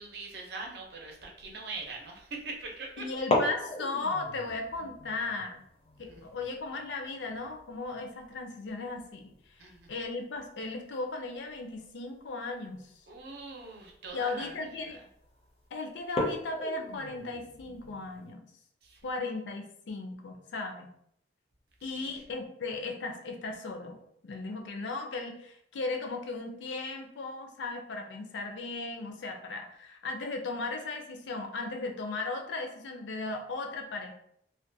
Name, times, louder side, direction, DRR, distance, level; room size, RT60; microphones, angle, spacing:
voice 1, 0.0-3.0 6.0-6.2 9.6-9.9 13.1-14.6 14.8-15.0 18.8-19.0 21.9-22.1, right 3 dB, 60° right, 1 dB, 0.6 m, -42 dB
sound 1, 1.6-2.0 3.1-9.6 9.9-10.0 10.3-10.7 11.7-11.9 12.5-12.6 13.1-13.2 13.6-13.9 14.6-14.9 15.3-15.4 16.0-18.3, left 2 dB, 35° left, 0.4 m, -36 dB
voice 2, 3.0-5.6 6.0-9.3 9.9-12.9 14.1-15.0 15.7-18.4 19.0-20.9 21.8-34.1, left 3 dB, 85° left, 4 dB, 0.5 m, -36 dB
2.4 x 2.2 x 2.6 m, 0.70 s
head